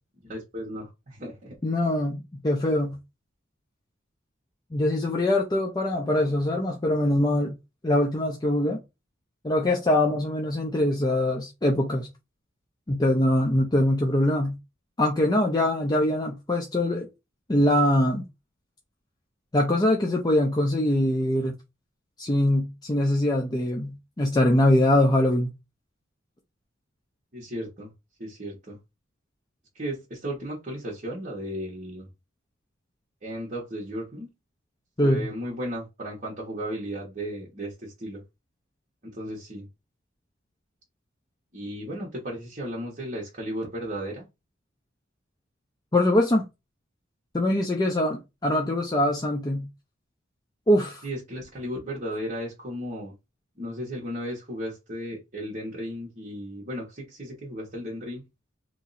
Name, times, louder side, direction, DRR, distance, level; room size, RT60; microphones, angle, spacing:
voice 1, 0.2-1.6 27.3-27.9 28.2-28.8 29.7-32.1 33.2-34.3 35.0-38.2 39.0-39.7 41.5-44.2 51.0-53.1 53.6-58.2, equal, 40° right, 1.2 m, -35 dB
voice 2, 1.6-3.0 4.7-7.5 7.8-8.8 9.4-12.1 12.9-14.6 15.0-17.1 17.5-18.2 19.5-21.5 22.2-25.5 35.0-35.3 45.9-46.4 47.3-49.7 50.7-51.0, left 1 dB, 20° left, 0.5 m, -23 dB
3.0 x 2.7 x 4.0 m
head